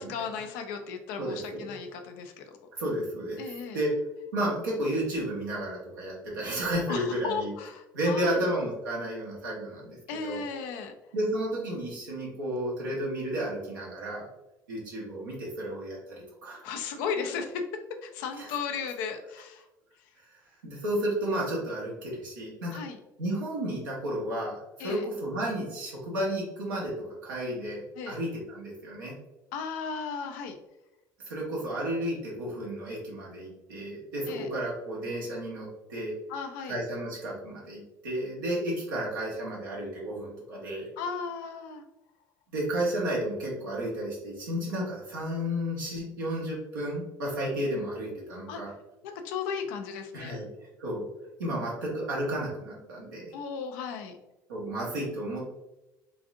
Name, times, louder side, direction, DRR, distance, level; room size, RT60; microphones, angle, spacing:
voice 1, 0.0-2.5 3.4-3.8 6.9-8.4 10.1-10.9 16.6-17.6 18.0-19.6 22.7-23.0 24.8-25.0 28.0-28.2 29.5-30.6 34.3-34.5 36.3-36.8 41.0-41.8 48.5-48.6 49.0-50.4 53.3-54.2, left 6 dB, 75° left, 6 dB, 0.4 m, -35 dB
voice 2, 1.2-1.8 2.8-3.4 3.7-3.9 4.3-7.5 7.9-10.4 11.1-14.3 14.7-16.6 18.4-18.5 20.6-22.8 23.2-26.9 27.2-29.2 31.3-36.1 36.7-40.9 42.5-48.7 50.1-50.5 50.8-51.1 51.4-53.3 54.5-55.5, right 1 dB, 90° right, -4 dB, 1.1 m, -32 dB
3.9 x 2.5 x 2.5 m, 0.98 s
hypercardioid pair, 65°, 10 cm